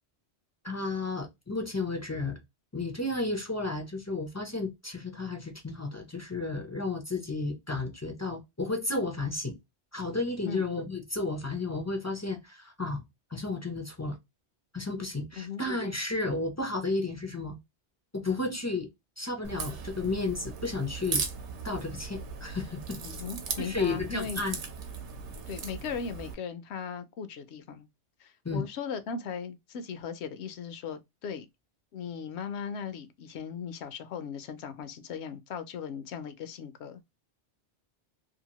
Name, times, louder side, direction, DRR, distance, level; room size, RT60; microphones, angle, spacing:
voice 1, 0.6-2.4 2.7-9.6 9.9-13.0 13.3-14.2 14.7-17.6 18.1-18.9 19.2-21.3 21.6-23.0 23.6-24.6 28.4-28.6, left 3 dB, 30° left, 0.3 m, -32 dB
Crack, 19.4-26.3, right 5 dB, 80° right, 1.0 m, -38 dB
voice 2, 23.0-24.4 25.5-27.9 28.2-31.5 31.9-37.0, left 6 dB, 75° left, 0.8 m, -38 dB
2.8 x 2.5 x 2.8 m
omnidirectional pair, 1.2 m